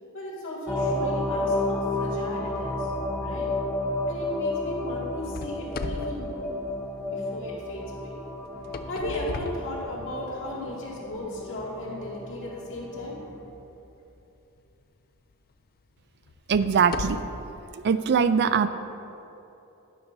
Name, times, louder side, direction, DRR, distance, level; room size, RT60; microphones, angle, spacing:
voice 1, 0.1-2.9 3.2-3.5 4.1-6.5 7.1-8.2 8.5-13.5, left 1 dB, 60° left, -5 dB, 2.1 m, -36 dB
sound 1, 0.7-13.2, left 2 dB, 5° left, 0.7 m, -31 dB
sound 2, 5.3-7.3 8.4-10.4 11.0-11.2 11.8-11.9 14.6-14.7 15.3-15.4 16.2-17.5, left 3 dB, 45° left, 0.4 m, -37 dB
voice 2, 16.5-17.2 17.8-18.7, right 6 dB, 50° right, 12 dB, 0.4 m, -21 dB
11.5 x 11.0 x 2.7 m, 3.0 s
head